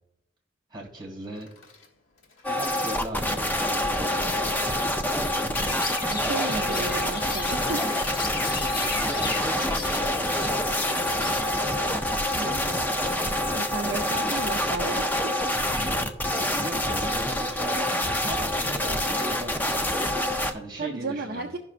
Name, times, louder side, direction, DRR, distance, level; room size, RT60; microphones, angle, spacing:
voice 1, 0.7-1.5 2.4-4.3 6.5-7.2 9.1-11.5 15.7-21.5, right 1 dB, 20° right, -1 dB, 2.3 m, -39 dB
Coin (dropping), 1.2-11.7, left 5 dB, 80° left, 1.3 m, -48 dB
sound 1, 2.4-20.5, left 1 dB, 10° left, 0.4 m, -26 dB
Chirp tweet, 5.5-12.4, left 4 dB, 45° left, 0.9 m, -37 dB
voice 2, 6.1-7.8 12.4-12.9 13.5-15.1 20.8-21.6, right 3 dB, 50° right, 3 dB, 0.5 m, -33 dB
15.5 x 5.9 x 2.5 m, 0.87 s
head